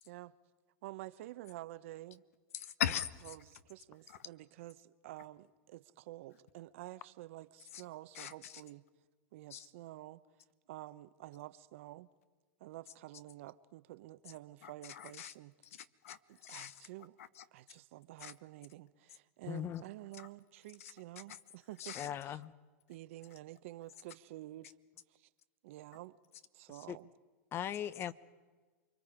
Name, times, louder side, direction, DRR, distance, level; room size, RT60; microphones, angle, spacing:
voice 1, 0.8-2.2 3.3-8.8 9.3-10.2 10.7-12.1 12.6-15.5 16.3-17.2 17.5-21.9 22.2-22.4 22.9-24.8 25.1-25.3 25.6-26.2 26.5-27.1, right 16 dB, 65° right, 0.9 m, -50 dB
voice 2, 2.5-3.4 4.1-4.3 7.7-7.8 8.1-8.6 9.5-9.7 14.6-15.3 15.6-16.8 17.2-17.4 18.2-18.3 20.1-20.3 20.8-20.9 21.3-21.4 21.8-22.1, left 10 dB, 75° left, 1.1 m, -41 dB
voice 3, 19.5-19.8 22.0-22.5 26.9-27.0 27.5-28.1, left 10 dB, 30° left, 0.8 m, -39 dB
29.0 x 23.0 x 5.0 m
hypercardioid pair, 125°, 8 cm